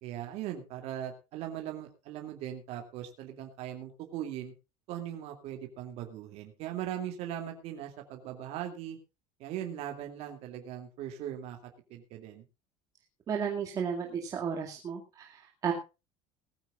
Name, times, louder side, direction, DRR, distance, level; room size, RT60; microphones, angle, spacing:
voice 1, 0.0-4.5 4.9-9.0 9.4-12.4, right 11 dB, 55° right, 4 dB, 2.6 m, -39 dB
voice 2, 13.3-15.7, right 7 dB, 25° right, 0 dB, 2.2 m, -33 dB
19.0 x 15.0 x 2.4 m, 0.29 s
cardioid pair, 175°, 13 cm